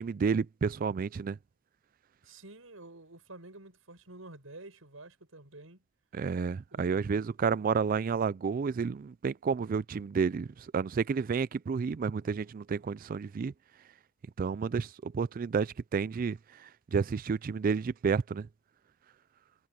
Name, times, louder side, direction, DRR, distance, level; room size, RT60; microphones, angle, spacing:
voice 1, 0.0-1.4 6.1-13.5 14.4-18.5, right 5 dB, 45° right, 0.3 m, -31 dB
voice 2, 2.2-5.8 6.7-7.3, right 2 dB, 90° right, 6.5 m, -50 dB
head